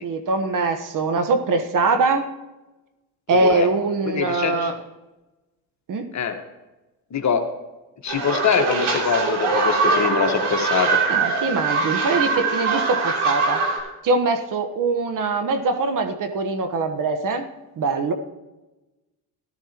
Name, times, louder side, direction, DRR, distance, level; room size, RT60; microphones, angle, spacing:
voice 1, 0.0-2.3 3.3-4.7 5.9-6.0 11.1-13.6 14.0-17.4 17.8-18.1, right 3 dB, 45° right, 8 dB, 1.3 m, -22 dB
voice 2, 3.3-3.7 4.1-4.7 6.1-6.3 7.1-7.4 8.0-11.0, left 7 dB, 40° left, 6 dB, 1.5 m, -23 dB
sound 1, 8.1-13.8, right 4 dB, 65° right, 3.3 m, -22 dB
14.5 x 12.0 x 3.0 m, 1.1 s
supercardioid pair, 70°, 43 cm